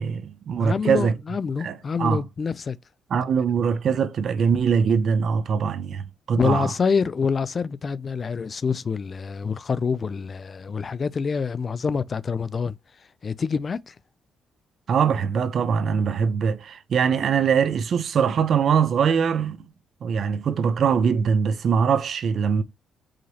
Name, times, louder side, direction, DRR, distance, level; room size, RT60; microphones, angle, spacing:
voice 1, 0.0-1.2 1.6-2.2 3.1-6.7 14.9-19.6 20.0-22.6, right 6 dB, 60° right, 0.6 m, -22 dB
voice 2, 0.6-2.8 6.4-12.7 13.2-13.9, left 5 dB, 40° left, 0.3 m, -26 dB
4.9 x 3.0 x 2.7 m
cardioid pair, 90°, 0 cm